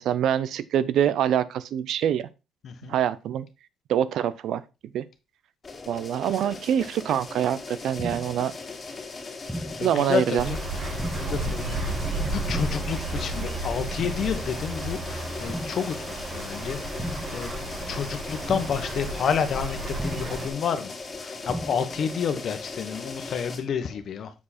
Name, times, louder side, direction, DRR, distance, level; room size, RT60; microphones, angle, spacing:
voice 1, 0.0-2.3 2.9-3.5 3.9-4.6 4.9-5.1 5.9-8.5 9.8-10.5, right 10 dB, 80° right, 0.5 m, -25 dB
voice 2, 2.6-2.9 9.5-17.6 17.9-20.9 21.2-24.3, left 7 dB, 60° left, 1.2 m, -30 dB
sound 1, 5.6-23.6, left 4 dB, 35° left, 2.5 m, -38 dB
sound 2, 8.0-8.5 9.5-10.0 11.0-11.5 12.5-13.0 14.0-14.5 15.5-16.0 17.0-17.5 18.5-19.0 20.0-20.5 21.5-22.0, equal, 5° right, 1.4 m, -35 dB
sound 3, 10.4-20.5, right 2 dB, 45° right, 1.7 m, -33 dB
7.2 x 4.8 x 4.2 m
cardioid pair, 90°, 0 cm